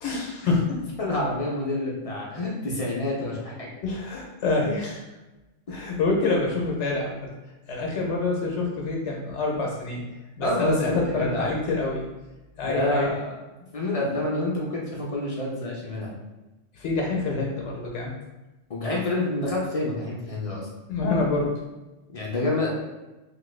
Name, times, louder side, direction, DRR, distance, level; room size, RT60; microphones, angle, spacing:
voice 1, 0.0-0.8 3.8-5.0 5.7-7.3 7.7-10.0 10.4-12.1 12.6-13.1 16.7-18.1 20.9-21.5, left 3 dB, 70° left, -1 dB, 0.9 m, -26 dB
voice 2, 1.0-3.7 5.7-5.8 10.4-11.5 12.6-13.2 13.7-16.1 18.7-20.7 22.1-22.7, left 2 dB, 45° left, -4 dB, 0.5 m, -28 dB
2.9 x 2.4 x 3.1 m, 1.1 s
omnidirectional pair, 1.3 m